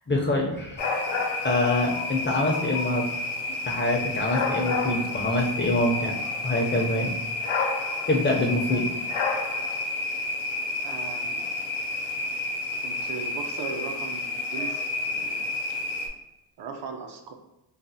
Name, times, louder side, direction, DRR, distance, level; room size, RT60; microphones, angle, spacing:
voice 1, 0.1-0.8 1.2-3.1 3.7-6.2 6.4-7.1 8.1-8.9, left 2 dB, 25° left, 0 dB, 0.5 m, -25 dB
sound 1, 0.8-16.1, left 3 dB, 80° left, 0.7 m, -30 dB
voice 2, 8.5-9.0 10.8-11.6 12.8-15.6 16.6-17.3, right 5 dB, 60° right, 4 dB, 0.6 m, -39 dB
4.0 x 2.0 x 2.6 m, 0.96 s
cardioid pair, 105°, 46 cm